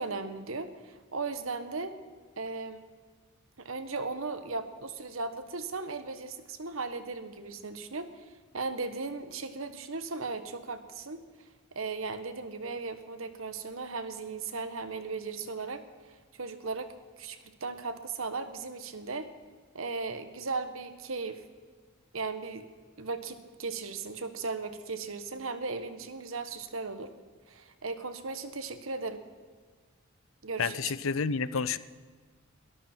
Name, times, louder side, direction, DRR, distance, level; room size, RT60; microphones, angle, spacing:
voice 1, 0.0-2.0 2.4-2.8 3.6-8.3 8.5-11.2 11.7-16.9 17.2-19.3 19.7-21.4 22.1-22.7 23.0-27.1 27.5-29.2 30.4-30.9, right 4 dB, 75° right, 10 dB, 1.3 m, -37 dB
voice 2, 30.6-31.8, left 5 dB, 70° left, 16 dB, 0.6 m, -29 dB
22.0 x 13.5 x 4.5 m, 1.5 s
head